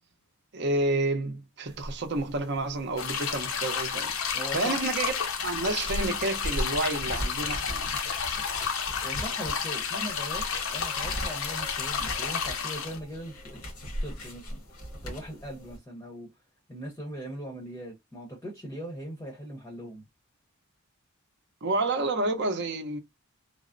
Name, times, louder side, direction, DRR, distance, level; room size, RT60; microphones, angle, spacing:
voice 1, 0.5-4.1 4.5-5.1 5.4-7.9 21.6-23.0, right 2 dB, 50° right, 0.6 m, -29 dB
sound 1, 1.7-15.8, equal, 85° left, 1.3 m, -39 dB
sound 2, 3.0-13.0, left 6 dB, 65° left, 0.6 m, -31 dB
voice 2, 4.3-4.9 9.0-10.5 10.7-13.6 14.0-14.6 15.0-16.3 16.7-20.1, equal, 15° left, 0.7 m, -40 dB
3.3 x 2.0 x 2.5 m
head